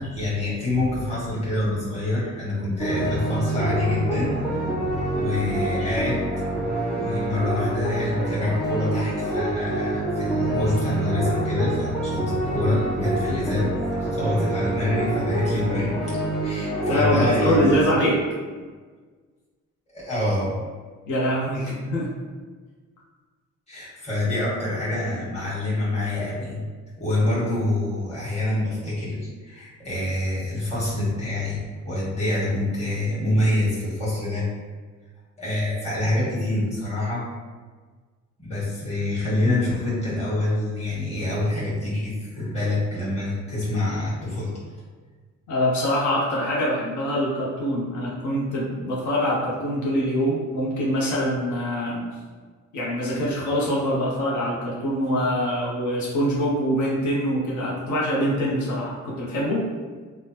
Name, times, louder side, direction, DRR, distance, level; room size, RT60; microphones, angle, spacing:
voice 1, 0.0-4.7 5.1-6.2 6.9-17.9 19.9-20.5 23.7-26.6 27.0-31.6 31.8-34.4 35.4-37.2 38.4-44.5, left 1 dB, 20° left, -8 dB, 1.4 m, -26 dB
sound 1, 2.8-17.8, right 1 dB, ahead, 0.7 m, -26 dB
voice 2, 16.8-18.2 21.1-22.1 45.5-52.1 52.7-59.7, equal, 80° left, -5 dB, 0.7 m, -24 dB
3.1 x 2.1 x 2.8 m, 1.5 s
cardioid pair, 90°, 30 cm